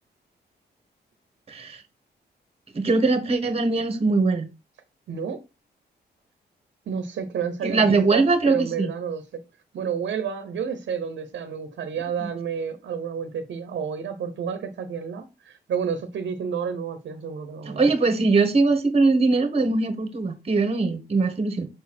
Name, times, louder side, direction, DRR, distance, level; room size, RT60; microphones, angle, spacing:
voice 1, 1.5-1.8 2.7-4.5 7.6-8.9 12.2-12.3 17.6-21.7, right 3 dB, 35° right, 1.4 m, -21 dB
voice 2, 5.1-5.4 6.9-9.2 9.7-17.8, right 7 dB, 85° right, 1.0 m, -30 dB
6.6 x 4.3 x 4.4 m
cardioid pair, 115°, 18 cm